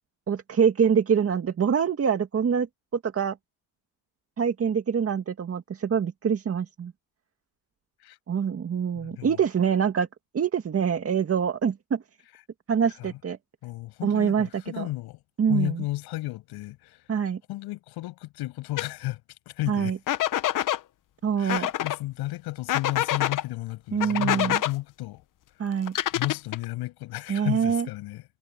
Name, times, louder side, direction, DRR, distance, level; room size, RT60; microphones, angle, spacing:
voice 1, 0.3-2.7 3.0-3.4 4.4-6.9 8.3-10.1 10.3-12.0 12.7-13.4 14.0-14.5 14.7-14.9 15.4-15.8 17.1-17.4 19.7-20.0 21.2-21.7 23.9-24.6 25.6-25.9 27.3-27.9, right 7 dB, 40° right, 2.1 m, -25 dB
voice 2, 8.9-9.4 13.0-13.1 13.6-15.2 15.5-17.1 17.5-19.2 19.5-20.0 21.4-25.2 26.1-28.2, left 18 dB, 90° left, 7.8 m, -33 dB
sound 1, 18.8-18.9 20.1-20.8 21.5-22.0 22.7-23.4 24.0-24.7 25.9-26.6, left 13 dB, 60° left, 1.0 m, -26 dB
cardioid pair, 105°, 37 cm